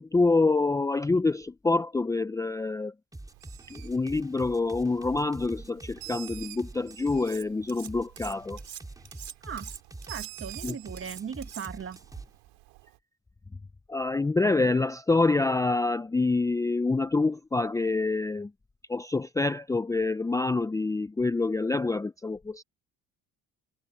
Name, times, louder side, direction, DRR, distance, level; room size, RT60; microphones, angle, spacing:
voice 1, 0.0-2.9 3.7-8.6 10.6-10.7 13.9-18.5 18.9-22.6, left 3 dB, 10° left, 0.5 m, -26 dB
sound 1, 3.1-7.2 7.8-12.3, right 2 dB, 10° right, 4.6 m, -45 dB
Bird, 3.3-13.0, right 22 dB, 85° right, 2.5 m, -50 dB
Cutlery silverware, 7.2-7.9 8.2-12.0, right 9 dB, 50° right, 5.8 m, -43 dB
voice 2, 10.0-12.0, right 7 dB, 35° right, 1.6 m, -38 dB
supercardioid pair, 90°, 36 cm